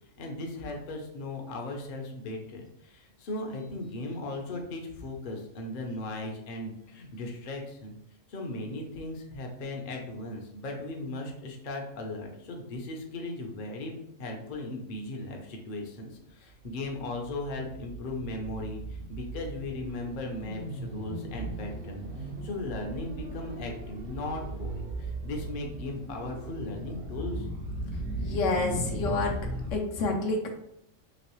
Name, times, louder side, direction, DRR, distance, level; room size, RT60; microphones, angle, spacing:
voice 1, 0.2-8.0 8.3-22.1 22.4-27.5, left 2 dB, 50° left, 1 dB, 0.7 m, -37 dB
sound 1, 16.7-29.8, right 1 dB, 75° right, 1.0 m, -37 dB
voice 2, 27.9-29.4 29.7-30.5, left 3 dB, 75° left, 2 dB, 0.9 m, -29 dB
3.1 x 2.9 x 2.9 m, 0.75 s
omnidirectional pair, 1.3 m